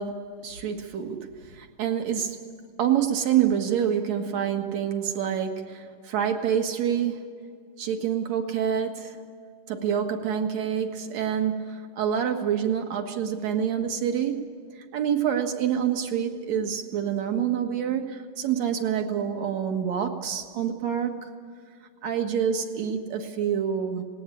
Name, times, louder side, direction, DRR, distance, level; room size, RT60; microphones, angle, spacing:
voice 1, 0.0-2.4 2.8-7.2 7.8-9.2 9.7-14.5 14.8-21.3 22.0-24.0, right 8 dB, 60° right, 5 dB, 2.6 m, -27 dB
19.0 x 18.5 x 8.6 m, 2.2 s
omnidirectional pair, 3.8 m